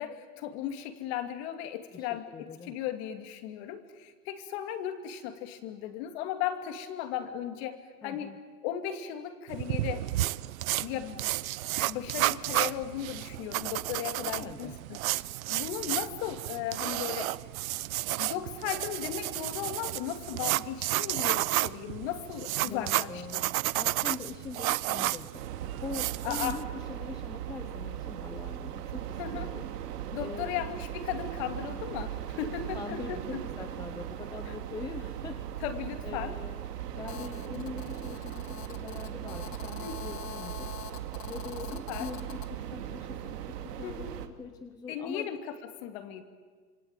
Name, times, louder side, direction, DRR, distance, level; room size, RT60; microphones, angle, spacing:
voice 1, 0.0-8.3 8.6-10.1 10.8-11.4 11.8-15.0 15.5-17.4 18.2-23.5 26.2-26.6 29.2-29.5 30.1-33.4 34.5-34.6 35.6-36.4 39.8-40.1 41.7-42.1 43.8-44.1 44.9-46.2, left 10 dB, 40° left, 7 dB, 2.7 m, -36 dB
voice 2, 1.9-2.7 8.0-8.4 14.3-14.7 22.6-25.4 25.8-29.7 30.2-30.6 32.4-35.4 36.0-40.7 41.2-45.3, left 5 dB, 10° left, 7 dB, 0.8 m, -43 dB
sound 1, 9.5-26.6, right 16 dB, 60° right, 0.8 m, -32 dB
sound 2, 25.3-44.3, right 11 dB, 80° right, 2.5 m, -38 dB
Telephone, 37.1-42.5, left 9 dB, 85° left, 2.6 m, -45 dB
26.5 x 24.5 x 9.1 m, 1.5 s
supercardioid pair, 155°, 47 cm